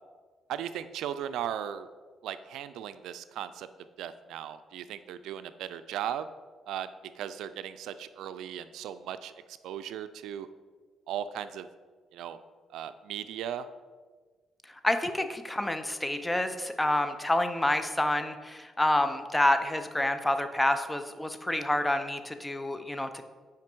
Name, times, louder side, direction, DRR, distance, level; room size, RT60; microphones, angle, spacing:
voice 1, 0.5-1.9 2.2-3.7 4.0-6.3 6.7-6.9 7.2-9.3 9.6-10.5 11.1-11.7 12.1-12.4 12.7-13.7, right 10 dB, 85° right, 12 dB, 0.4 m, -37 dB
voice 2, 14.8-23.2, left 1 dB, 10° left, 9 dB, 0.7 m, -28 dB
9.3 x 5.0 x 4.5 m, 1.5 s
cardioid pair, 90°, 0 cm